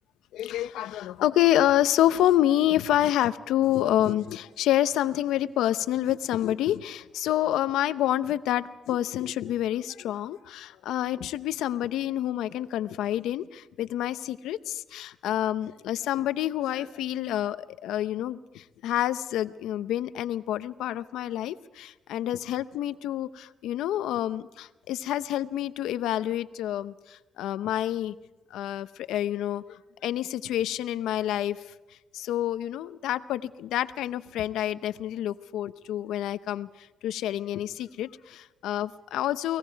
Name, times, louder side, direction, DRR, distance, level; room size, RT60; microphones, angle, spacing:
voice 1, 0.3-28.1 28.5-31.7 32.1-39.6, left 12 dB, 85° left, 13 dB, 0.7 m, -28 dB
29.5 x 19.5 x 4.6 m, 1.1 s
cardioid pair, 90°, 0 cm